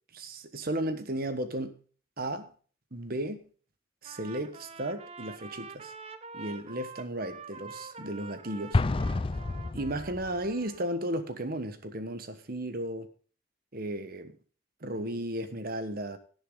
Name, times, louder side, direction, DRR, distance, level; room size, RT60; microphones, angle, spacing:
voice 1, 0.1-1.8 2.2-2.5 2.9-3.4 4.0-5.9 6.3-8.8 9.7-13.1 13.7-14.4 14.8-16.2, right 1 dB, 50° right, 1.3 m, -34 dB
Trumpet, 4.0-11.0, right 5 dB, 30° right, 0.9 m, -46 dB
Explosion, 8.7-10.4, left 3 dB, 30° left, 0.4 m, -29 dB
17.5 x 7.1 x 3.8 m
head